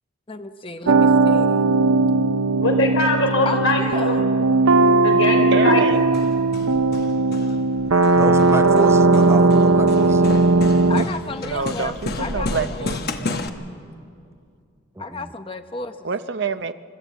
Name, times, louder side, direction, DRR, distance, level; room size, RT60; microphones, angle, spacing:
voice 1, 0.3-1.7 3.4-4.2 10.9-13.0 15.0-16.1, left 3 dB, 25° left, 8 dB, 0.9 m, -32 dB
sound 1, 0.9-11.1, right 3 dB, 90° right, 0.7 m, -17 dB
voice 2, 2.6-4.2 5.0-5.8, left 2 dB, 70° left, 1 dB, 4.0 m, -21 dB
voice 3, 5.5-6.0 11.4-13.5 16.0-16.7, right 4 dB, 55° right, 11 dB, 0.6 m, -27 dB
Hammer, 5.9-13.5, left 2 dB, 50° left, 1.0 m, -32 dB
voice 4, 8.2-10.3 15.0-15.3, right 1 dB, 15° right, 10 dB, 0.5 m, -29 dB
28.5 x 12.5 x 8.3 m, 2.4 s
head